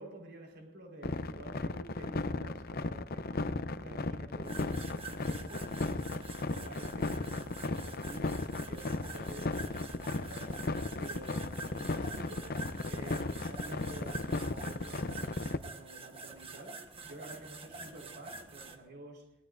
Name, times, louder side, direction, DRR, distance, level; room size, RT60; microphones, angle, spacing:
voice 1, 0.0-6.3 6.5-10.6 11.0-12.5 12.8-19.3, right 2 dB, 60° right, 1 dB, 4.8 m, -50 dB
sound 1, 1.0-15.6, left 3 dB, 50° left, 0.7 m, -35 dB
sound 2, 4.4-18.8, right 3 dB, 30° right, 1.4 m, -47 dB
23.5 x 18.5 x 2.6 m, 0.83 s
head